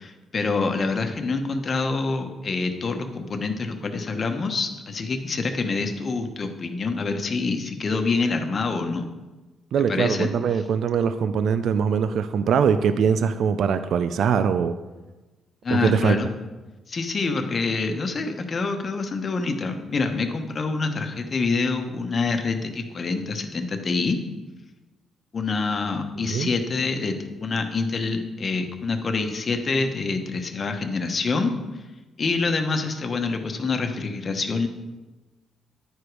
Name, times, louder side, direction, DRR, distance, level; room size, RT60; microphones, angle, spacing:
voice 1, 0.0-9.1 9.9-10.3 15.6-16.3 16.9-24.2 25.3-31.5 32.2-34.7, left 4 dB, 40° left, 5 dB, 1.0 m, -26 dB
voice 2, 9.7-14.7 15.7-16.2 26.2-26.5, right 7 dB, 70° right, 11 dB, 0.4 m, -22 dB
10.0 x 4.9 x 4.7 m, 1.2 s
cardioid pair, 90°, 0 cm